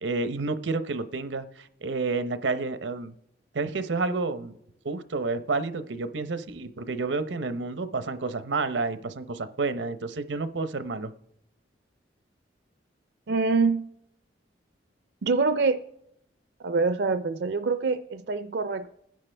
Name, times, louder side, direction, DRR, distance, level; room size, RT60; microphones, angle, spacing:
voice 1, 0.0-3.1 3.5-4.6 4.8-11.1, right 3 dB, 90° right, 12 dB, 0.8 m, -30 dB
voice 2, 13.3-13.9 15.2-15.8 16.6-19.0, right 4 dB, 65° right, 10 dB, 0.4 m, -25 dB
29.0 x 10.0 x 3.4 m, 0.82 s
head